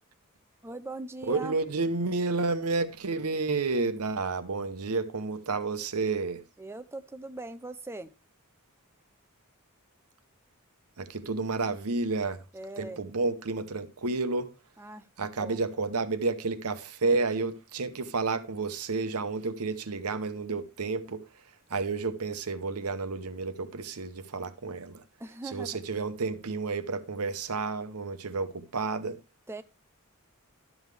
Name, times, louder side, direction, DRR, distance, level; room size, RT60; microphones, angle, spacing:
voice 1, 0.6-1.6 6.6-8.1 12.5-13.0 14.8-15.6 25.2-25.8 29.5-29.6, right 2 dB, 10° right, 0.5 m, -40 dB
voice 2, 1.3-6.4 11.0-12.4 12.8-14.5 15.2-21.2 21.7-25.0 25.5-29.2, right 3 dB, 80° right, 0.9 m, -30 dB
12.0 x 7.2 x 3.3 m
head